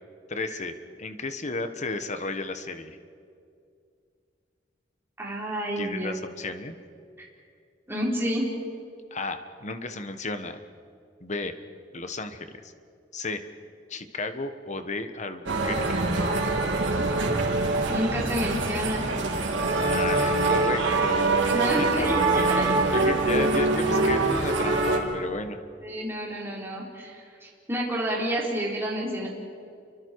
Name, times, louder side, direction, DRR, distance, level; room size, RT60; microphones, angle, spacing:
voice 1, 0.3-3.0 5.8-6.8 9.1-10.6 11.2-11.5 11.9-12.7 13.1-13.4 13.9-16.0 19.7-22.1 22.3-25.6, left 3 dB, 40° left, 9 dB, 1.3 m, -33 dB
voice 2, 5.2-6.1 7.9-8.4 17.9-19.0 21.5-22.7 22.9-23.0 25.8-29.3, equal, 15° right, -4 dB, 4.8 m, -29 dB
sound 1, 15.5-25.0, right 3 dB, 85° right, 3.2 m, -24 dB
29.5 x 24.5 x 4.8 m, 2.3 s
head